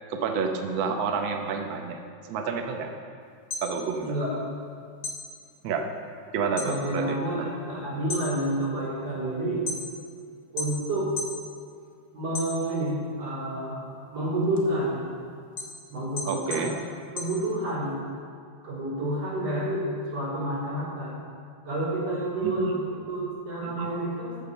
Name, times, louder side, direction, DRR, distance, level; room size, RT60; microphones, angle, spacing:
voice 1, 0.1-2.0 2.3-2.9 3.6-4.2 5.6-5.9 6.3-7.2 16.2-16.7 22.4-22.8 23.6-23.9, right 5 dB, 75° right, 4 dB, 1.1 m, -29 dB
sound 1, 3.3-4.7 5.0-6.8 7.1-7.6 8.0-10.1 10.6-11.4 11.8-13.0 13.4-18.0, left 3 dB, 45° left, 1.5 m, -36 dB
voice 2, 6.6-9.6 10.5-11.1 12.1-15.0 15.9-16.7 17.1-18.1 18.6-21.1 21.6-24.4, right 1 dB, 55° right, -6 dB, 4.7 m, -29 dB
14.5 x 5.8 x 6.8 m, 2.2 s
omnidirectional pair, 3.4 m